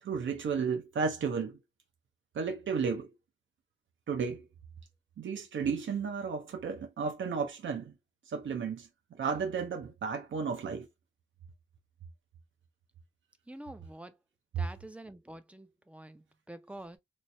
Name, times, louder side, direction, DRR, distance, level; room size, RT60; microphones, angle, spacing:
voice 1, 0.0-1.6 2.3-3.1 4.1-4.4 5.2-7.9 8.3-8.9 9.2-10.9, right 5 dB, 65° right, 0.7 m, -33 dB
voice 2, 13.5-14.2 14.6-17.0, right 1 dB, 5° right, 0.4 m, -47 dB
3.1 x 2.1 x 4.1 m
wide cardioid pair, 130°, 21 cm